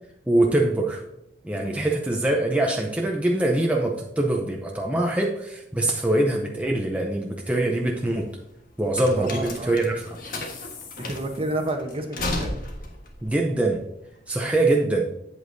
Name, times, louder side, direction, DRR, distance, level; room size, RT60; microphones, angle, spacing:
voice 1, 0.3-1.0 1.4-8.3 8.8-10.2 13.2-13.8 14.3-15.1, right 1 dB, 10° right, 0 dB, 0.7 m, -23 dB
sound 1, 7.7-14.5, left 2 dB, 50° left, 1.4 m, -34 dB
voice 2, 9.2-9.9 11.0-12.5, right 1 dB, 30° right, 4 dB, 1.0 m, -30 dB
8.5 x 7.7 x 2.7 m, 0.82 s
head